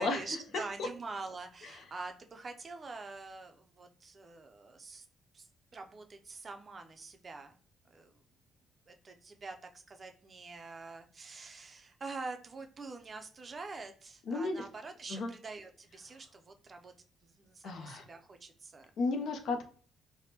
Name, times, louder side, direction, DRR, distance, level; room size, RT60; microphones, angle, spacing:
voice 1, 0.0-5.1 5.3-7.6 7.9-8.2 8.9-16.9 17.2-18.9, right 3 dB, 40° right, 6 dB, 0.4 m, -45 dB
voice 2, 14.3-14.6 15.1-15.3 17.6-18.0 19.0-19.6, left 3 dB, 70° left, 6 dB, 0.5 m, -33 dB
3.3 x 2.1 x 2.8 m, 0.42 s
cardioid pair, 90°, 0 cm